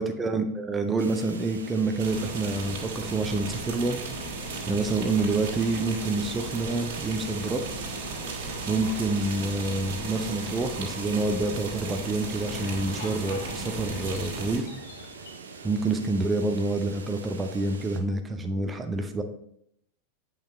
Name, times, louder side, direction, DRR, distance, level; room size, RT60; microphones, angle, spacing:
voice 1, 0.0-4.0 4.7-7.6 8.7-14.7 15.6-19.2, right 2 dB, 15° right, 6 dB, 0.8 m, -27 dB
sound 1, 1.0-18.0, right 4 dB, 70° right, 0.9 m, -43 dB
sound 2, 2.0-14.6, right 3 dB, 55° right, 2.7 m, -36 dB
sound 3, 5.9-6.7 8.7-9.2 9.5-9.8 10.7-11.5 11.8-11.9 12.3-15.3, left 3 dB, 60° left, 2.4 m, -44 dB
8.6 x 5.6 x 3.7 m, 0.72 s
figure-of-eight pair, 90°, 0 cm